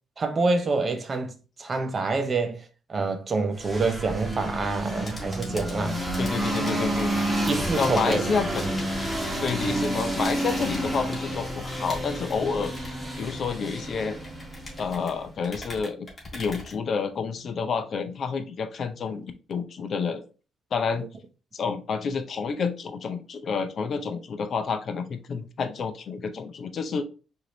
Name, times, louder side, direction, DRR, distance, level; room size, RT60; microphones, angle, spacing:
voice 1, 0.2-1.3 1.6-2.6 2.9-6.0 7.5-8.2, right 3 dB, 40° right, 0.7 m, -26 dB
sound 1, 3.6-15.3, right 1 dB, 5° right, 1.4 m, -30 dB
sound 2, 5.0-17.4, left 1 dB, 25° left, 1.7 m, -44 dB
voice 2, 6.2-7.1 7.8-8.6 9.4-12.7 13.2-14.2 14.8-16.1 16.3-20.2 20.7-21.1 21.5-27.0, left 5 dB, 55° left, 0.6 m, -29 dB
4.8 x 2.7 x 3.0 m
cardioid pair, 90°, 0 cm